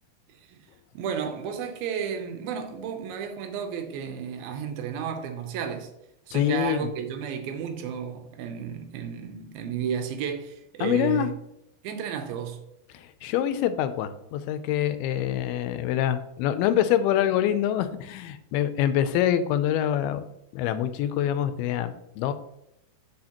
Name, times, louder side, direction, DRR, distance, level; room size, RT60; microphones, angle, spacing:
voice 1, 0.9-5.9 6.3-11.3 11.8-12.6, right 7 dB, 80° right, 2.5 m, -32 dB
voice 2, 6.3-6.9 10.8-11.3 12.9-20.3 20.5-22.3, left 10 dB, 90° left, 2.5 m, -25 dB
8.1 x 6.4 x 2.9 m
omnidirectional pair, 4.4 m